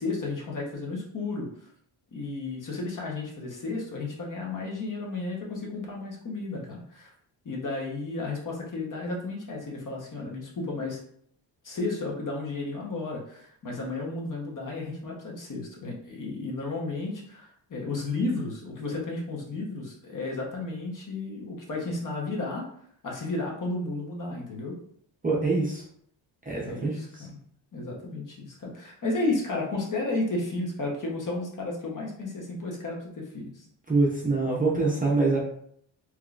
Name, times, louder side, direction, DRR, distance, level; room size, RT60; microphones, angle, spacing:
voice 1, 0.0-1.5 2.1-7.1 7.4-11.0 11.6-22.6 23.0-24.8 26.6-27.4 27.7-33.7, left 2 dB, 40° left, -1 dB, 1.0 m, -33 dB
voice 2, 25.2-25.8 26.5-27.3 33.9-35.4, right 3 dB, 20° right, -4 dB, 0.6 m, -25 dB
3.5 x 3.0 x 2.4 m, 0.65 s
cardioid pair, 130°, 48 cm